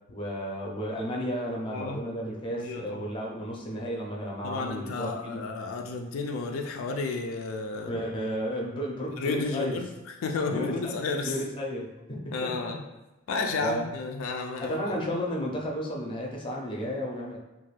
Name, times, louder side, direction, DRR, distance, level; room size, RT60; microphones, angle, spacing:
voice 1, 0.1-5.5 7.7-9.8 10.5-10.9 11.2-12.7 13.6-13.8 14.6-17.4, equal, 25° left, -2 dB, 0.4 m, -33 dB
voice 2, 1.7-2.0 2.5-3.1 4.4-8.0 9.2-9.9 10.2-11.4 12.1-12.8 13.3-14.9, left 4 dB, 85° left, 3 dB, 0.3 m, -32 dB
2.5 x 2.3 x 3.1 m, 1.0 s
head